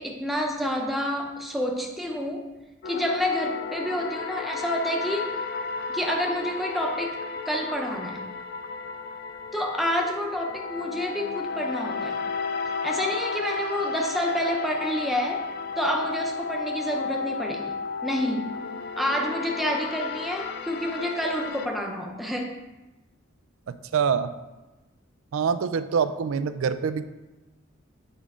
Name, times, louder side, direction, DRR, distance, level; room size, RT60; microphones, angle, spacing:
voice 1, 0.0-2.5 2.9-5.3 5.9-7.2 7.5-8.2 9.5-12.2 12.8-15.4 15.8-18.6 19.0-22.5, equal, ahead, 0 dB, 0.7 m, -28 dB
sound 1, 2.8-21.7, left 5 dB, 50° left, 0.3 m, -33 dB
voice 2, 23.7-24.3 25.3-27.1, right 6 dB, 80° right, 12 dB, 0.4 m, -25 dB
8.1 x 5.1 x 3.7 m, 1.1 s
head